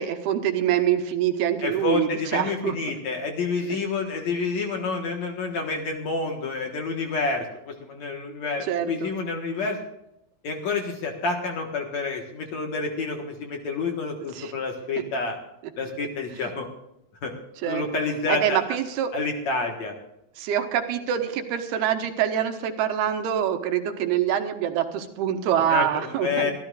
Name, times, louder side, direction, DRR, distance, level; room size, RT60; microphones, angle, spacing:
voice 1, 0.0-2.8 8.3-9.1 14.4-14.5 16.3-16.5 17.6-17.8 18.3-19.1 20.4-26.5, right 10 dB, 80° right, 6 dB, 3.2 m, -25 dB
voice 2, 1.6-9.8 10.4-15.4 15.8-16.7 17.2-17.3 17.6-18.6 19.1-19.9 25.7-26.5, left 4 dB, 55° left, 2 dB, 2.3 m, -28 dB
24.5 x 13.5 x 2.5 m, 0.83 s
omnidirectional pair, 4.6 m